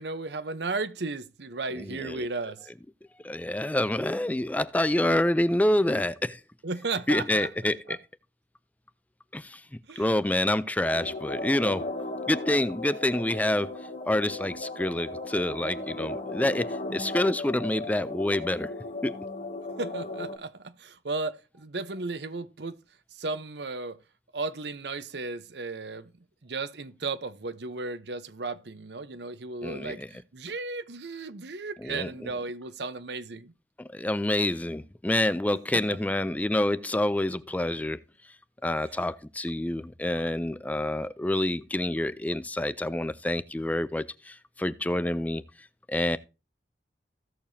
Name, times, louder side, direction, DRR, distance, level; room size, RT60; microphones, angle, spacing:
voice 1, 0.0-2.7 6.6-8.0 9.9-10.1 19.8-22.8 23.1-24.0 24.3-26.1 26.4-33.5 35.7-35.8 38.9-39.0, right 3 dB, 75° right, 0.9 m, -35 dB
voice 2, 1.7-2.3 3.2-6.4 7.1-8.0 9.3-9.6 10.0-11.9 12.3-13.8 14.1-18.7 19.0-19.2 29.6-30.1 31.8-32.1 33.8-38.0 38.6-46.2, left 1 dB, 10° left, 0.4 m, -27 dB
sound 1, 10.8-20.4, left 2 dB, 50° left, 1.2 m, -36 dB
16.0 x 6.8 x 2.7 m
head